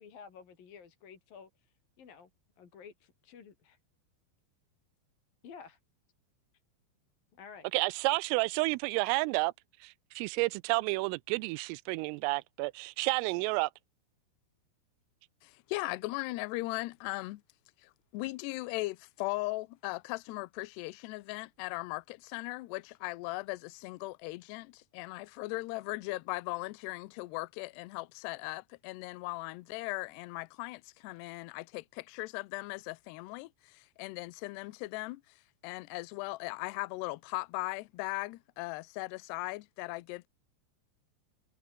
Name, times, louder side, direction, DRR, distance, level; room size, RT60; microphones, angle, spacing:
voice 1, 0.0-2.3 2.6-3.8 5.4-5.8 7.3-7.7, left 6 dB, 50° left, 4.6 m, -52 dB
voice 2, 7.7-9.5 9.8-13.7, right 25 dB, 85° right, 3.2 m, -30 dB
voice 3, 15.4-17.4 17.8-35.4 35.6-40.3, left 22 dB, 90° left, 2.3 m, -38 dB
omnidirectional pair, 5.8 m